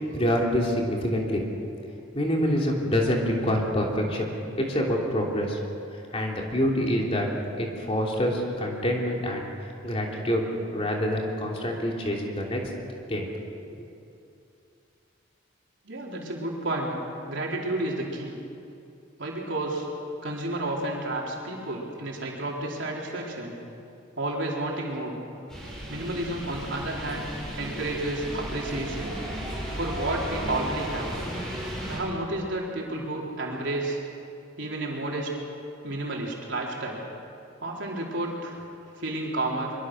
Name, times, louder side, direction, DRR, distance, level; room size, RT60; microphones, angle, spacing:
voice 1, 0.1-1.6 2.1-4.3 4.6-5.6 5.9-7.3 7.6-9.4 9.8-10.4 10.7-12.6 13.1-13.3 13.7-13.8, equal, 30° left, -1 dB, 3.1 m, -26 dB
voice 2, 15.8-16.9 17.3-18.4 19.2-19.9 20.2-23.6 24.2-25.1 25.9-27.3 27.6-29.2 29.7-31.1 31.9-34.0 34.6-35.3 35.8-37.0 37.6-38.6 39.0-39.7, right 2 dB, 65° right, -2 dB, 4.5 m, -31 dB
sound 1, 25.5-32.0, equal, 5° left, 7.3 m, -35 dB
24.0 x 23.5 x 6.5 m, 2.6 s
head